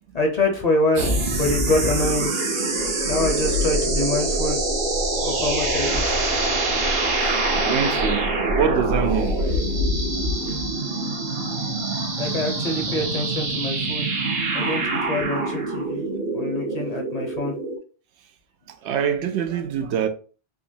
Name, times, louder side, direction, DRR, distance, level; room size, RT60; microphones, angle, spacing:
voice 1, 0.1-1.1 1.4-2.3 3.0-4.6 5.2-6.0 12.2-14.1 14.5-16.1 16.3-17.5, left 2 dB, 45° left, 0.6 m, -25 dB
sound 1, 1.0-17.8, right 2 dB, 60° right, 1.1 m, -24 dB
voice 2, 7.2-9.8 10.4-10.6 18.8-20.1, right 8 dB, 80° right, 0.9 m, -25 dB
3.8 x 2.8 x 2.6 m
omnidirectional pair, 1.2 m